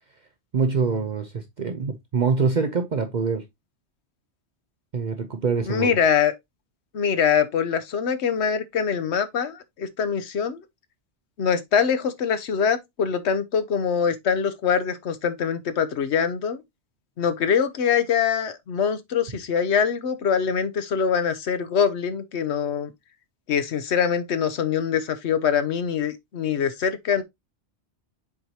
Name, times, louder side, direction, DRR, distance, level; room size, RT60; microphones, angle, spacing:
voice 1, 0.5-3.4 4.9-5.9, right 5 dB, 50° right, 0.7 m, -24 dB
voice 2, 5.7-6.3 6.9-10.6 11.4-16.6 17.2-22.9 23.5-27.2, left 7 dB, 75° left, 1.1 m, -23 dB
7.1 x 4.7 x 2.8 m
omnidirectional pair, 1.1 m